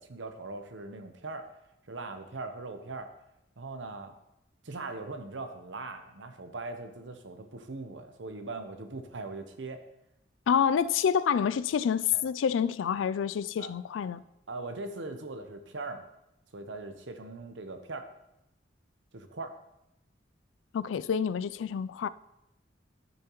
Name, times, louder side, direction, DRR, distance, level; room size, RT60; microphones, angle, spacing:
voice 1, 0.0-1.4 1.9-3.1 3.6-4.1 4.6-9.8 12.1-12.2 13.6-13.7 14.1-14.2 14.5-16.1 16.5-18.1 19.1-19.6, right 3 dB, 75° right, 0.9 m, -40 dB
voice 2, 10.5-14.2 20.7-22.1, left 7 dB, 90° left, 0.3 m, -28 dB
12.0 x 7.0 x 3.1 m
head